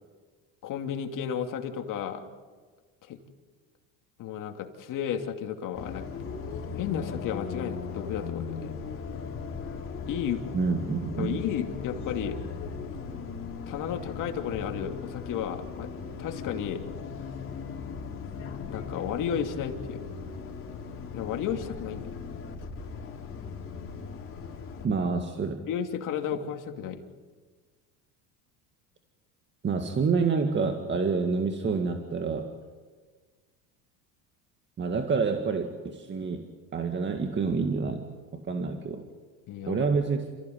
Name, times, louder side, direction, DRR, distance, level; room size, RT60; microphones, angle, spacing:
voice 1, 0.6-2.2 3.0-3.2 4.2-6.1 6.7-8.7 10.1-10.4 11.2-12.4 13.7-15.9 16.2-16.8 18.7-20.0 21.1-22.1 25.7-27.0 39.5-39.9, left 8 dB, 55° left, 4 dB, 2.8 m, -33 dB
Bus, 5.7-24.9, left 5 dB, 35° left, 4.2 m, -38 dB
voice 2, 10.5-11.4 24.8-25.7 29.6-32.5 34.8-36.4 36.7-38.0 38.3-39.0 39.7-40.2, right 5 dB, 30° right, 5 dB, 2.0 m, -28 dB
29.0 x 15.5 x 9.5 m, 1.5 s
supercardioid pair, 115°, 38 cm